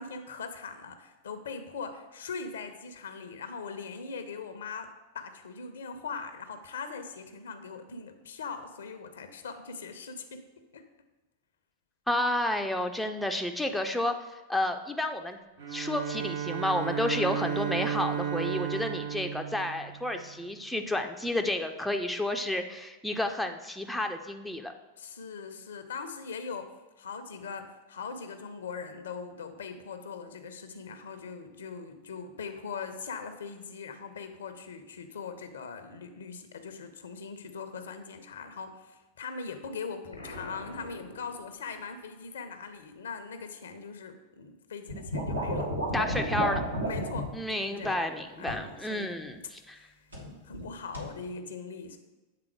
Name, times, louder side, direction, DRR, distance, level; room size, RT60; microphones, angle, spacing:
voice 1, 0.0-4.9 5.1-10.4 10.7-10.8 25.0-46.3 46.8-48.0 48.4-49.1 49.7-49.9 50.4-52.0, left 5 dB, 65° left, 8 dB, 0.6 m, -41 dB
voice 2, 12.1-14.2 14.5-15.4 15.7-24.7 45.9-46.6 47.3-49.8, left 1 dB, 5° left, 4 dB, 0.4 m, -31 dB
Bowed string instrument, 15.6-20.4, right 8 dB, 60° right, 0.9 m, -33 dB
Explosion, 40.1-41.9, left 1 dB, 85° left, 1.0 m, -45 dB
sound 1, 44.9-47.3 47.8-48.1 48.5-48.7 50.1-50.7 50.9-51.1, equal, 85° right, 1.4 m, -32 dB
7.6 x 3.6 x 4.6 m, 1.2 s
figure-of-eight pair, 90°, 0 cm